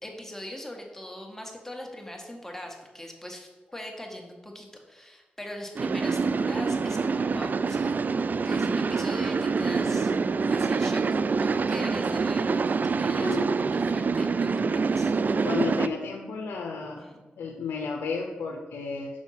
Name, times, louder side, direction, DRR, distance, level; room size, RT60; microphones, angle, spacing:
voice 1, 0.0-8.0 8.3-10.1 10.5-15.5 17.0-17.2, left 1 dB, 10° left, 1 dB, 1.6 m, -41 dB
sound 1, 5.8-15.9, right 4 dB, 50° right, 0.3 m, -26 dB
voice 2, 13.2-13.5 15.4-17.0 17.4-19.1, left 4 dB, 90° left, 1 dB, 0.6 m, -32 dB
6.2 x 4.5 x 5.7 m, 1.3 s
cardioid pair, 50°, 4 cm